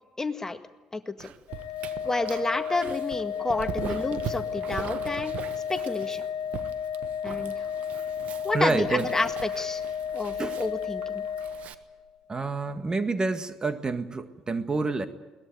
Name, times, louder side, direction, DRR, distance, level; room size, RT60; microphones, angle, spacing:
voice 1, 0.2-0.6 0.9-1.3 2.0-5.4 5.7-6.2 7.2-7.6 8.4-9.8 10.1-11.2, left 2 dB, 20° left, 8 dB, 1.8 m, -30 dB
Dog, 1.2-11.7, right 9 dB, 60° right, 1.3 m, -41 dB
Organ, 1.5-12.2, left 8 dB, 80° left, 1.7 m, -33 dB
voice 2, 8.5-9.1 10.4-10.6 12.3-15.1, right 3 dB, 30° right, 9 dB, 1.8 m, -28 dB
21.5 x 19.5 x 9.4 m, 1.2 s
hypercardioid pair, 50°, 3 cm